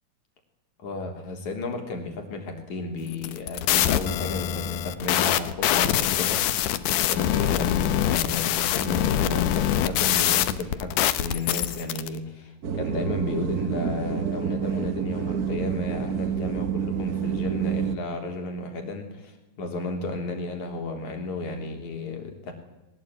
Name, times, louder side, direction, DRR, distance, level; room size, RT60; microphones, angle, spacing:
voice 1, 0.8-6.7 7.0-22.5, left 2 dB, 65° left, 4 dB, 4.8 m, -33 dB
sound 1, 3.1-12.1, left 11 dB, 85° left, 2.6 m, -24 dB
sound 2, 12.6-18.0, right 7 dB, 80° right, 0.8 m, -28 dB
21.5 x 19.0 x 9.2 m, 0.98 s
omnidirectional pair, 3.6 m